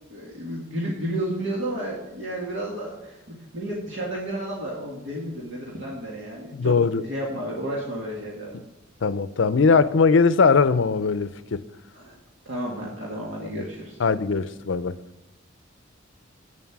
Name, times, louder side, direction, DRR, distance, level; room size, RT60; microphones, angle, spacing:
voice 1, 0.1-6.7 7.0-8.6 11.9-12.2 12.5-14.0, right 1 dB, 75° right, 2.0 m, -32 dB
voice 2, 6.5-7.0 8.5-8.6 9.0-11.7 13.4-13.6 14.0-15.0, left 4 dB, 75° left, 0.5 m, -20 dB
8.8 x 7.4 x 5.9 m
head